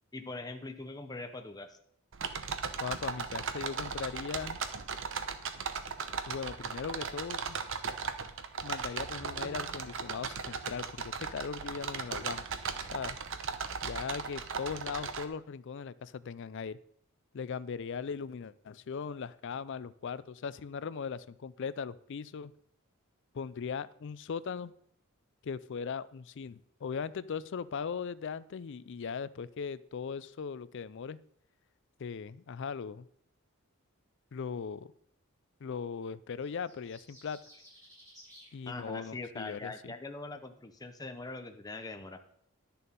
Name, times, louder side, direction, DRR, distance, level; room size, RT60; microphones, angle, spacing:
voice 1, 0.1-1.8 38.7-42.2, left 2 dB, 15° left, 6 dB, 0.7 m, -42 dB
sound 1, 2.1-15.2, right 5 dB, 60° right, 0.8 m, -37 dB
voice 2, 2.8-4.6 6.3-7.6 8.6-12.4 12.9-13.2 13.8-16.8 17.3-22.5 23.3-24.7 25.4-31.2 32.0-33.1 34.3-34.9 35.6-37.4 38.5-39.9, left 6 dB, 60° left, 17 dB, 0.4 m, -39 dB
sound 2, 36.4-38.5, equal, 15° right, 5.5 m, -56 dB
11.0 x 6.8 x 5.3 m, 0.67 s
head